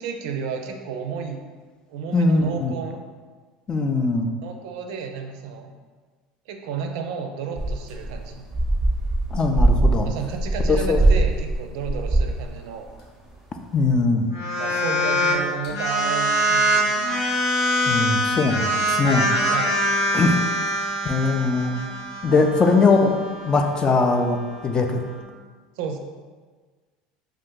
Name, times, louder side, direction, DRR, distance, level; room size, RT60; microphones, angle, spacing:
voice 1, 0.0-1.4 1.9-3.0 4.4-5.7 6.5-8.5 10.0-12.9 14.6-17.0 19.5-19.8 22.5-22.6 25.8-26.0, right 6 dB, 75° right, 4 dB, 0.4 m, -32 dB
voice 2, 2.1-2.7 3.7-4.3 9.3-10.1 10.7-11.0 13.7-14.3 17.9-19.3 20.1-20.4 21.0-21.8 22.2-24.4 24.6-25.0, left 3 dB, 25° left, 4 dB, 0.3 m, -20 dB
sound 1, 7.6-12.6 12.8-12.9 13.8-13.9, right 2 dB, 10° right, 0.6 m, -21 dB
sound 2, 14.3-15.4 15.6-25.2, equal, 90° left, 0.8 m, -24 dB
2.6 x 2.4 x 3.7 m, 1.4 s
supercardioid pair, 105°, 3 cm